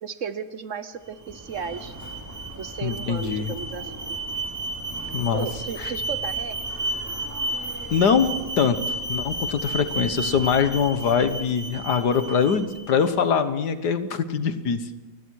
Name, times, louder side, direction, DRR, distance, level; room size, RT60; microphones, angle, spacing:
voice 1, 0.0-1.9 2.6-4.2 5.3-6.6, right 6 dB, 55° right, 12 dB, 1.2 m, -34 dB
Alarm, 1.1-13.1, right 2 dB, 10° right, 2.8 m, -32 dB
voice 2, 2.8-3.5 5.1-5.5 5.8-5.9 7.9-8.8 9.1-14.9, left 6 dB, 80° left, 10 dB, 1.9 m, -23 dB
29.5 x 21.5 x 4.7 m, 1.1 s
omnidirectional pair, 1.7 m